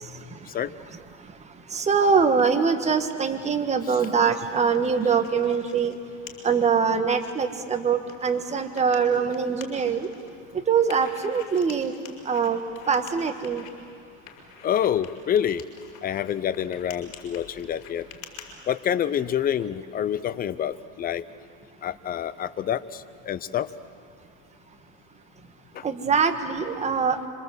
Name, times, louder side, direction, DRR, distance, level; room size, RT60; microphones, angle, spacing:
voice 1, 1.7-5.9 6.4-10.1 10.5-11.9 12.2-12.6 12.9-13.6 25.8-27.3, right 6 dB, 15° right, 6 dB, 1.6 m, -23 dB
sound 1, 2.4-3.3 3.7-5.9 6.3-6.4 6.9-7.3 8.1-10.3 10.9-13.7 14.3-18.5, left 9 dB, 70° left, 5.8 m, -47 dB
voice 2, 14.6-15.6 16.0-18.1 18.7-21.2 21.8-23.7 25.7-25.8, left 9 dB, 20° left, 15 dB, 0.7 m, -27 dB
27.0 x 26.0 x 8.1 m, 2.3 s
supercardioid pair, 135°, 41 cm